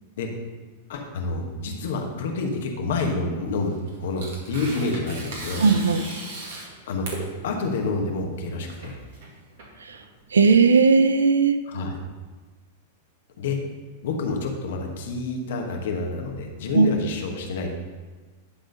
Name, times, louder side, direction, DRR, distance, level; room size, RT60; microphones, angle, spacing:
voice 1, 0.9-5.7 6.9-7.0 7.4-9.0 11.7-12.0 13.4-13.6 14.0-17.7, left 3 dB, 70° left, 2 dB, 1.3 m, -28 dB
Tearing, 3.5-10.3, right 2 dB, 65° right, 2.1 m, -38 dB
voice 2, 5.6-6.0 9.8-10.0 10.3-11.6 16.7-16.9, right 4 dB, 85° right, 10 dB, 0.6 m, -17 dB
10.5 x 3.8 x 5.3 m, 1.4 s
hypercardioid pair, 105°, 0 cm